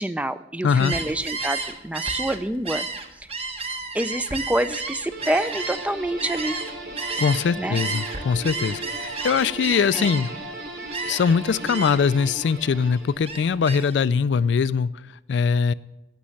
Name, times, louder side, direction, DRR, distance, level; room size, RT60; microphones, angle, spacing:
voice 1, 0.0-2.9 3.2-3.3 3.9-6.6 7.6-7.8 9.9-10.1, right 1 dB, 10° right, 13 dB, 0.3 m, -27 dB
voice 2, 0.6-0.9 7.2-10.3 11.1-14.9 15.3-15.7, left 6 dB, 80° left, 16 dB, 0.4 m, -22 dB
Gull seagull, 0.7-7.5 7.7-10.5 10.9-11.4 11.7-12.1 12.5-14.0, right 4 dB, 35° right, 1.0 m, -32 dB
sound 1, 5.1-13.5, right 1 dB, 75° right, 2.9 m, -37 dB
16.5 x 6.3 x 5.7 m, 0.97 s
head